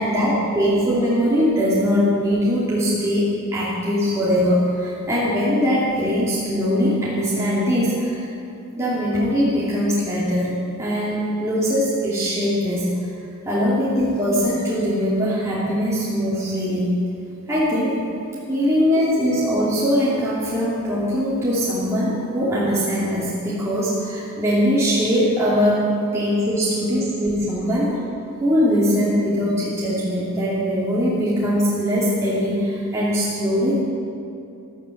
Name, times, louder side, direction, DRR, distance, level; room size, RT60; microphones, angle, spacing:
voice 1, 0.0-8.3 8.8-12.9 13.5-16.9 17.5-18.0 18.5-25.8 26.1-28.0 28.4-33.8, equal, 15° right, -9 dB, 2.8 m, -21 dB
14.0 x 13.5 x 7.9 m, 2.6 s
head